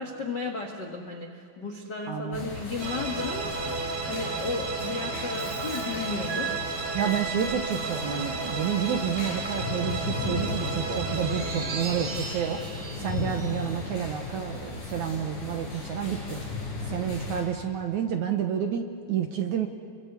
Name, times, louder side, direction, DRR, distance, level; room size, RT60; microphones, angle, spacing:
voice 1, 0.0-7.0, left 3 dB, 85° left, 3 dB, 0.9 m, -34 dB
voice 2, 2.1-2.5 6.9-12.6 13.0-16.4 16.9-19.7, right 8 dB, 80° right, 5 dB, 1.7 m, -30 dB
sound 1, 2.3-17.4, left 3 dB, 45° left, 7.3 m, -36 dB
sound 2, 2.8-14.2, right 4 dB, 45° right, 3.7 m, -33 dB
Bathtub (filling or washing), 5.4-10.7, equal, 10° left, 5.0 m, -50 dB
30.0 x 23.0 x 8.2 m, 2.2 s
omnidirectional pair, 5.1 m